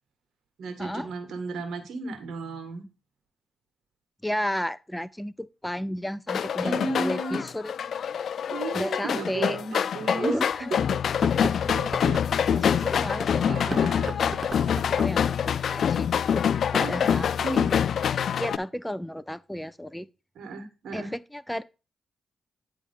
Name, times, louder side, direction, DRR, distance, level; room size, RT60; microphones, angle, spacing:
voice 1, 0.6-2.9 6.6-7.4 8.5-11.0 11.7-12.7 13.5-14.2 16.8-17.7 20.4-21.1, right 3 dB, 80° right, 1.7 m, -34 dB
voice 2, 4.2-7.7 8.7-9.6 10.1-10.5 12.6-14.3 14.6-16.5 16.7-17.8 18.4-20.1 20.9-21.6, equal, 5° left, 0.4 m, -33 dB
sound 1, 6.3-18.6, left 8 dB, 70° left, 0.3 m, -25 dB
sound 2, 7.9-8.0 9.1-9.2 9.8-9.9 11.1-12.3 13.6-15.3, right 3 dB, 40° right, 0.6 m, -37 dB
9.7 x 3.4 x 5.4 m
cardioid pair, 60°, 0 cm